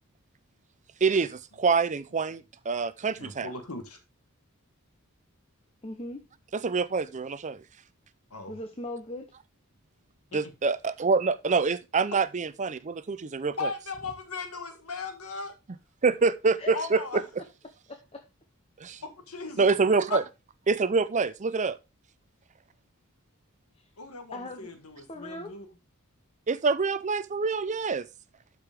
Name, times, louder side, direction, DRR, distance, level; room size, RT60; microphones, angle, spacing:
voice 1, 1.0-3.5 6.5-7.6 10.3-13.7 16.0-17.2 18.8-19.0 19.6-20.2 20.7-21.8 26.5-28.1, right 4 dB, 35° right, 0.5 m, -26 dB
voice 2, 3.2-4.0 8.3-8.6 10.3-10.4 13.6-15.5 16.7-17.2 19.3-19.6 20.1-20.2 24.0-25.7, left 3 dB, 90° left, 1.4 m, -37 dB
voice 3, 5.8-6.2 8.5-9.3 16.6-16.7 17.9-18.2 23.8-23.9 24.3-24.7 25.1-25.5, left 1 dB, 25° left, 0.9 m, -39 dB
12.0 x 5.0 x 3.5 m
head